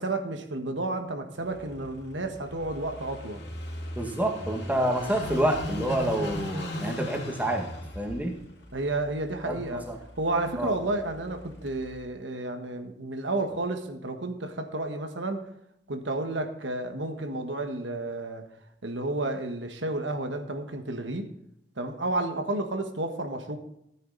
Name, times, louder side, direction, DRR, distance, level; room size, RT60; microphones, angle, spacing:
voice 1, 0.0-3.4 8.7-9.9 10.2-15.4 15.9-18.4 18.8-21.3 21.8-23.6, right 2 dB, 85° right, 5 dB, 1.6 m, -31 dB
Car passing by / Idling, 1.4-12.0, left 1 dB, 60° left, 2.6 m, -39 dB
voice 2, 4.0-7.6 8.0-8.3 9.5-10.0 10.6-10.7, right 1 dB, 10° right, 2 dB, 1.8 m, -28 dB
14.5 x 9.2 x 4.0 m, 0.78 s
head